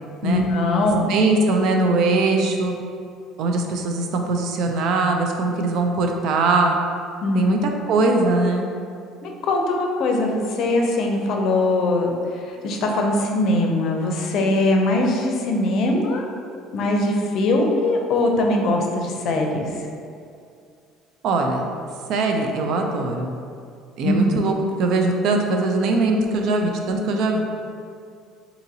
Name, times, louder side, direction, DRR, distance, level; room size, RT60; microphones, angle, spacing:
voice 1, 0.2-1.1 7.2-7.5 9.2-16.2 16.7-19.7 24.0-24.4, left 2 dB, 60° left, 2 dB, 0.5 m, -21 dB
voice 2, 1.1-2.7 3.4-6.8 7.3-8.7 21.2-21.6 22.1-23.3 24.0-24.5 24.8-27.4, right 3 dB, 65° right, 3 dB, 0.4 m, -21 dB
2.8 x 2.6 x 4.0 m, 2.3 s
cardioid pair, 110°, 0 cm